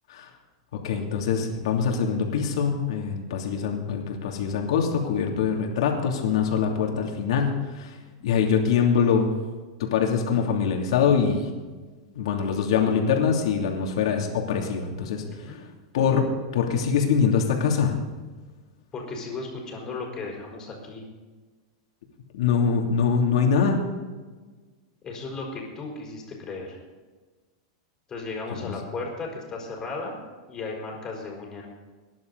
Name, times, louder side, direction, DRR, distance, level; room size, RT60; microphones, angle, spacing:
voice 1, 0.8-7.9 8.2-9.3 9.8-11.5 12.1-15.2 15.9-18.0 22.3-23.8 28.5-28.7, left 6 dB, 75° left, 1 dB, 2.9 m, -24 dB
voice 2, 15.2-15.6 18.9-21.0 25.0-26.8 28.1-30.2 30.5-31.7, left 3 dB, 20° left, -1 dB, 4.5 m, -35 dB
20.0 x 11.0 x 4.1 m, 1.3 s
supercardioid pair, 150°, 3 cm